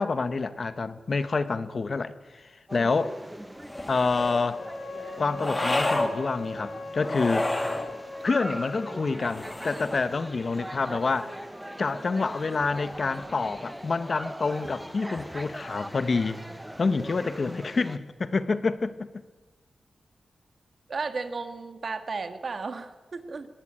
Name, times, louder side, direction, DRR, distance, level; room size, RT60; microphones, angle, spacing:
voice 1, 0.0-2.4 2.7-3.2 3.9-4.6 5.2-7.5 8.2-11.4 11.8-16.4 16.8-19.1, left 4 dB, 50° left, 1.1 m, -27 dB
sound 1, 2.7-18.0, equal, 5° right, 1.1 m, -40 dB
sound 2, 3.7-4.5 5.4-6.1 7.0-7.9 9.2-10.1, left 1 dB, 20° left, 2.5 m, -29 dB
Wind instrument woodwind instrument, 4.5-8.9, left 3 dB, 70° left, 5.2 m, -39 dB
voice 2, 20.9-23.5, right 4 dB, 55° right, 1.9 m, -34 dB
21.0 x 18.0 x 8.9 m
wide cardioid pair, 90°, 0 cm